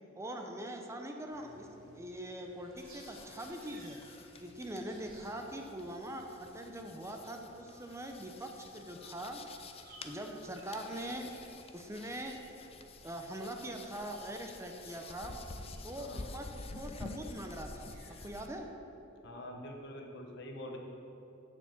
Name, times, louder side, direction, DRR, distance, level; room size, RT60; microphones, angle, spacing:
voice 1, 0.2-4.0 4.4-9.4 10.0-11.3 11.7-12.4 13.0-15.4 15.8-18.7, right 1 dB, 15° right, 3 dB, 0.6 m, -42 dB
sound 1, 1.3-18.6, right 1 dB, 45° right, 2.2 m, -60 dB
sound 2, 2.8-18.5, left 3 dB, 30° left, 0.5 m, -50 dB
voice 2, 16.0-16.3 19.2-20.8, left 1 dB, 60° left, 1 dB, 1.2 m, -45 dB
7.1 x 6.9 x 7.1 m, 3.0 s
head